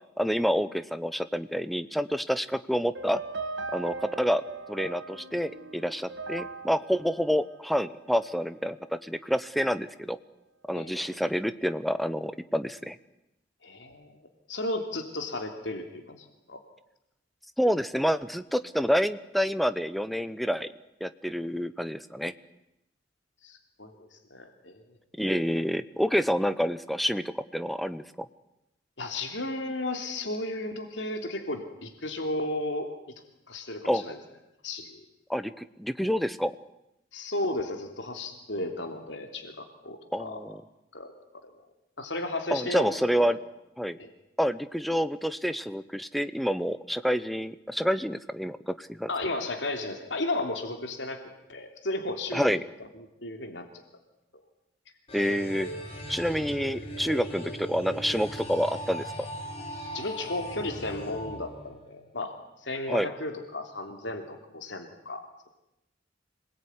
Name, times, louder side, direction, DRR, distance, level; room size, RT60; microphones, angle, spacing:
voice 1, 0.2-3.2 3.7-4.4 4.7-10.2 10.7-13.0 17.6-20.7 21.0-22.3 25.2-28.3 33.8-34.0 35.3-36.5 40.1-40.6 42.5-43.4 43.8-44.0 44.4-49.1 52.3-52.6 55.1-55.7 56.1-59.1 62.9-63.1, equal, ahead, 12 dB, 1.0 m, -28 dB
sound 1, 3.0-8.3, right 3 dB, 75° right, 2.0 m, -40 dB
voice 2, 10.7-11.2 13.6-16.6 23.4-24.8 29.0-33.1 33.5-34.2 34.6-35.0 37.1-40.4 40.9-41.1 41.4-41.5 42.0-43.3 44.0-44.1 49.1-51.2 51.5-52.6 53.2-53.8 59.9-62.3 62.6-65.2, left 2 dB, 75° left, 5 dB, 3.2 m, -34 dB
sound 2, 55.1-62.1, equal, 35° left, 8.0 m, -39 dB
26.5 x 20.0 x 9.8 m, 0.88 s
head